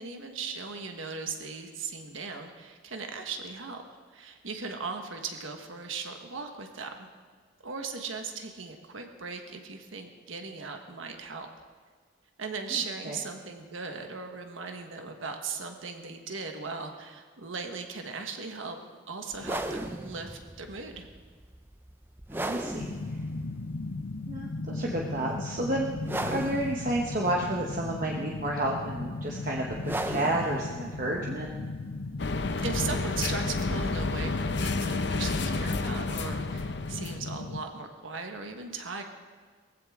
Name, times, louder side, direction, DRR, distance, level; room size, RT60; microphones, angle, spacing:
voice 1, 0.0-3.8 4.1-7.1 7.6-11.5 12.4-18.8 19.1-21.1 32.6-39.0, right 4 dB, 80° right, 5 dB, 1.4 m, -38 dB
sound 1, 19.3-34.7, right 1 dB, 10° right, 0.5 m, -39 dB
voice 2, 22.3-22.9 24.3-25.9 26.2-29.7 30.0-31.5, right 1 dB, 40° right, -1 dB, 1.0 m, -30 dB
sound 2, 22.8-37.6, left 3 dB, 90° left, 0.7 m, -37 dB
sound 3, 32.2-37.2, left 3 dB, 55° left, 0.7 m, -30 dB
19.0 x 15.0 x 3.7 m, 1.5 s
head